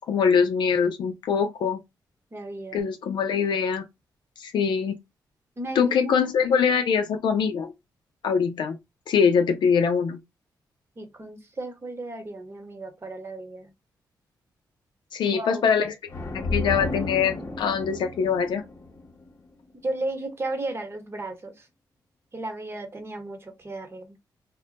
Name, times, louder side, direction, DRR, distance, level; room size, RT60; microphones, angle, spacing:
voice 1, 0.1-1.8 2.7-3.8 4.4-5.0 5.8-7.7 8.2-8.8 9.1-10.2 15.1-15.9 16.3-18.6, left 6 dB, 80° left, 0.5 m, -23 dB
voice 2, 2.3-2.9 5.6-6.1 11.0-13.7 15.2-15.6 19.7-21.7 22.3-24.2, right 2 dB, 30° right, 1.0 m, -34 dB
sound 1, 16.1-19.8, left 2 dB, 40° left, 1.0 m, -33 dB
2.2 x 2.1 x 3.8 m
cardioid pair, 70°, 8 cm